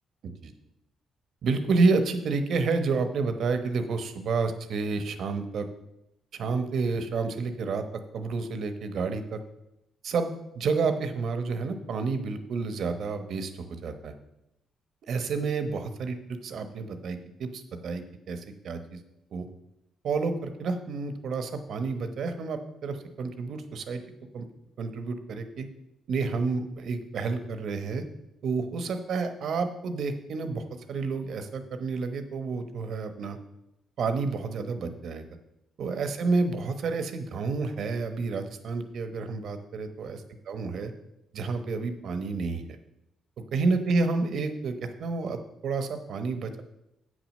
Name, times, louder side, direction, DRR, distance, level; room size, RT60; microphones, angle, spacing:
voice 1, 1.4-5.7 6.3-7.8 8.1-9.4 10.0-14.1 15.1-19.0 19.3-19.5 20.0-24.0 24.3-24.5 24.8-25.7 26.1-28.0 28.4-30.6 30.9-33.4 34.0-35.3 35.8-40.2 40.5-40.9 41.3-42.6 43.5-46.6, right 4 dB, 65° right, 8 dB, 1.1 m, -29 dB
8.0 x 6.3 x 6.5 m, 0.88 s
cardioid pair, 90°, 0 cm